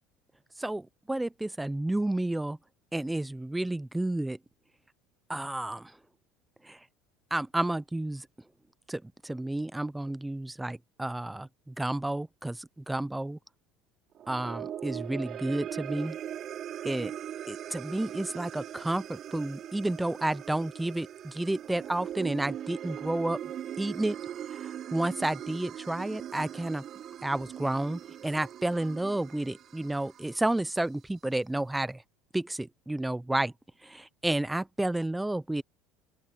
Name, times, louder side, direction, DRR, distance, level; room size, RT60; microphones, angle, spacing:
voice 1, 0.6-2.6 2.9-4.4 5.3-6.0 6.6-6.8 7.3-8.3 8.9-13.4 14.3-16.2 16.8-17.1 17.5-23.4 23.8-24.2 24.5-26.8 27.2-32.0 32.3-33.5 33.8-35.6, right 1 dB, 5° right, 0.6 m, -31 dB
sound 1, 14.1-30.6, right 10 dB, 45° right, 5.9 m, -40 dB
open air
cardioid pair, 130°, 0 cm